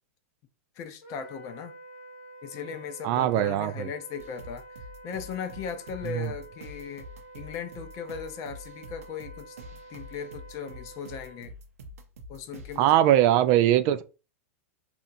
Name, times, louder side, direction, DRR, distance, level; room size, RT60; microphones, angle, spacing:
voice 1, 0.8-1.7 2.4-4.6 5.0-7.1 7.3-9.6 9.9-11.5 12.3-13.0, left 7 dB, 40° left, 0.6 m, -38 dB
Wind instrument woodwind instrument, 1.0-11.4, right 2 dB, 85° left, 0.9 m, -48 dB
voice 2, 3.0-3.9 6.1-6.3 12.8-14.0, right 12 dB, 45° right, 0.3 m, -21 dB
sound 1, 4.2-12.8, equal, 85° right, 0.6 m, -46 dB
2.9 x 2.4 x 2.6 m
hypercardioid pair, 110°, 8 cm